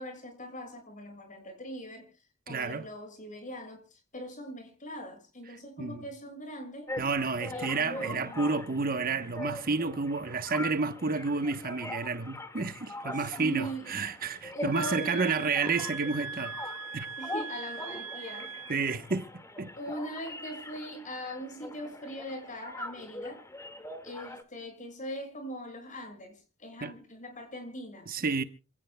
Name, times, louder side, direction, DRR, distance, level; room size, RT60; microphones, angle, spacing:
voice 1, 0.0-2.1 2.5-6.9 7.5-8.5 13.4-13.9 14.5-15.5 17.2-18.5 19.8-23.4 24.0-28.1, equal, 35° left, 6.7 m, -41 dB
voice 2, 2.5-2.9 5.5-6.0 7.0-16.6 16.9-17.1 18.7-19.3 19.6-19.7 26.8-26.9 28.1-28.4, right 4 dB, 45° right, 1.0 m, -30 dB
sound 1, 6.9-24.4, left 1 dB, 15° left, 1.9 m, -42 dB
sound 2, 14.7-19.0, right 4 dB, 70° right, 1.7 m, -40 dB
27.5 x 18.0 x 2.2 m
head